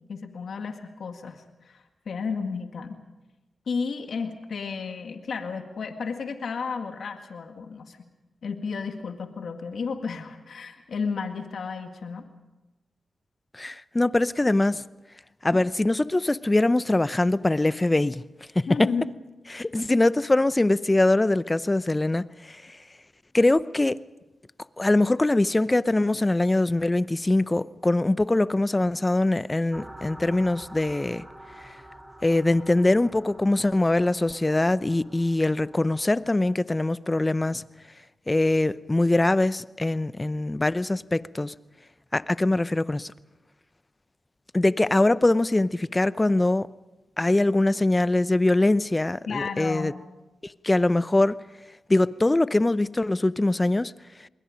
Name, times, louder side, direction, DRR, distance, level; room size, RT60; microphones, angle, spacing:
voice 1, 0.1-3.0 3.7-8.0 8.4-12.2 18.7-19.1 49.3-50.0, left 5 dB, 70° left, 1.9 m, -33 dB
voice 2, 13.5-14.8 15.4-18.2 18.5-18.9 19.5-22.6 23.3-24.0 24.8-31.2 32.2-37.6 38.3-41.5 42.1-43.1 44.5-46.7 47.2-49.9 50.4-51.4 51.9-53.9, left 2 dB, 25° left, 0.7 m, -23 dB
sound 1, 29.7-36.5, right 1 dB, 20° right, 5.3 m, -47 dB
27.5 x 21.5 x 5.2 m
supercardioid pair, 45°, 0 cm